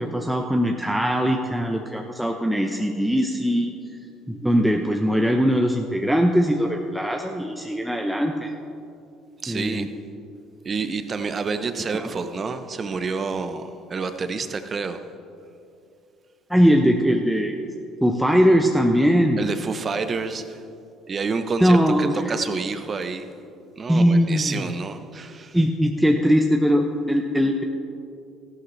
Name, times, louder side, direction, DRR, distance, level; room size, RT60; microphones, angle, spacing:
voice 1, 0.0-3.7 4.3-8.6 9.5-9.9 11.9-12.0 16.5-17.6 18.0-19.4 21.6-22.3 23.9-24.7 25.5-27.6, equal, 5° right, 2 dB, 0.8 m, -20 dB
voice 2, 9.4-9.9 10.6-15.0 19.4-20.6 21.1-23.3 23.8-25.6, right 4 dB, 40° right, 9 dB, 0.9 m, -28 dB
14.0 x 11.5 x 3.3 m, 2.5 s
hypercardioid pair, 65°, 0 cm